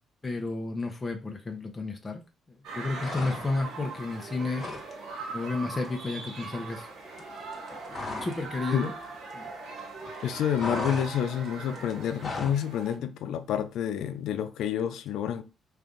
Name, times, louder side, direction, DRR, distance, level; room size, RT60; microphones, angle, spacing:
voice 1, 0.2-2.2 2.7-4.6 5.3-6.9 8.2-8.9 9.3-9.5, left 3 dB, 25° left, 0.8 m, -31 dB
sound 1, 2.6-13.0, right 3 dB, 80° right, 1.2 m, -41 dB
sound 2, 2.9-3.8 4.1-4.9 5.2-5.4 5.7-8.5 8.7-9.8 10.1-12.6, left 3 dB, 40° left, 1.3 m, -38 dB
voice 2, 10.2-15.4, left 9 dB, 80° left, 0.5 m, -29 dB
3.3 x 2.6 x 3.7 m
cardioid pair, 90°, 0 cm